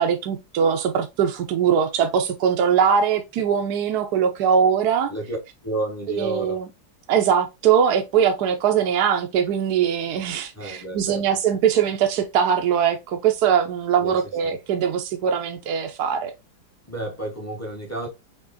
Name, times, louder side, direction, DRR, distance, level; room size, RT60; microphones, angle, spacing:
voice 1, 0.0-5.1 6.1-6.7 7.1-16.3, right 7 dB, 70° right, 1.0 m, -21 dB
voice 2, 5.6-6.6 10.5-11.2 14.0-14.6 16.9-18.1, right 2 dB, 10° left, 0.8 m, -31 dB
5.8 x 2.9 x 2.6 m
omnidirectional pair, 2.1 m